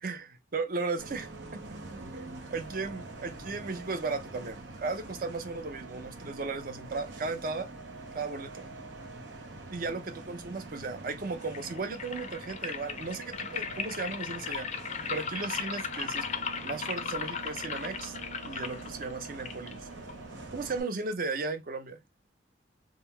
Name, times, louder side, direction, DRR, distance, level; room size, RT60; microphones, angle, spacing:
voice 1, 0.0-1.6 2.5-7.7 8.1-8.6 9.7-14.7 15.1-16.3 16.6-18.2 18.4-19.9 20.5-22.0, right 3 dB, 50° right, 0.6 m, -35 dB
Bus, 1.0-20.8, right 2 dB, 85° right, 0.8 m, -45 dB
sound 1, 11.4-20.4, left 6 dB, 40° left, 0.4 m, -37 dB
3.7 x 2.0 x 4.3 m
head